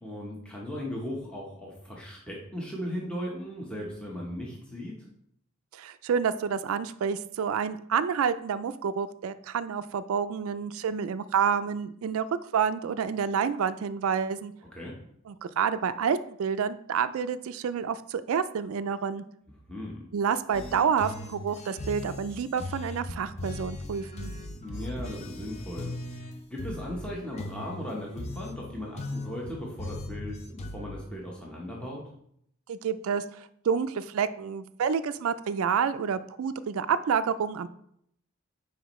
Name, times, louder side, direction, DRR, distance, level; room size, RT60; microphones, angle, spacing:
voice 1, 0.0-5.1 14.7-14.9 19.7-20.1 24.6-32.0, left 1 dB, 5° left, -3 dB, 1.0 m, -37 dB
voice 2, 5.7-12.2 12.5-14.5 15.3-19.2 20.1-24.3 32.7-37.7, right 7 dB, 80° right, 13 dB, 0.3 m, -29 dB
sound 1, 20.5-31.0, left 2 dB, 30° left, 0.6 m, -39 dB
9.4 x 4.3 x 3.1 m, 0.71 s
head